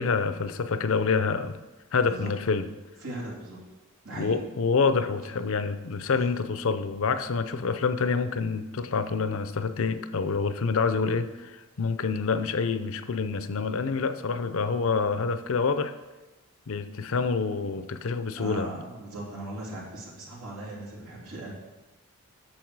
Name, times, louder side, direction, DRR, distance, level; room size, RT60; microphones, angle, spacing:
voice 1, 0.0-1.6 1.9-2.7 4.1-15.9 16.7-18.7, left 4 dB, 65° left, 11 dB, 0.6 m, -27 dB
voice 2, 3.0-3.6 4.0-4.4 18.4-21.5, right 1 dB, 85° right, -5 dB, 2.9 m, -38 dB
8.7 x 6.8 x 4.7 m, 1.1 s
head